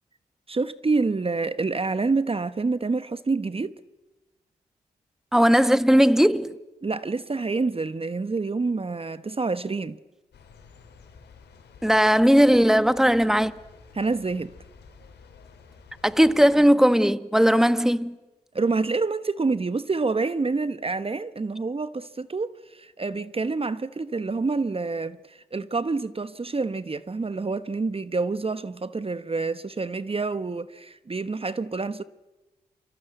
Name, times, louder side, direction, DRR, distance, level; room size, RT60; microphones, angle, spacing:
voice 1, 0.5-3.7 6.8-10.0 13.9-14.5 18.5-32.0, right 3 dB, 35° right, 1.1 m, -27 dB
voice 2, 5.3-6.6 11.8-13.5 16.0-18.2, equal, 5° right, 1.4 m, -18 dB
sound 1, 10.3-16.7, left 5 dB, 80° left, 4.4 m, -51 dB
28.5 x 25.0 x 8.0 m
supercardioid pair, 45°, 17 cm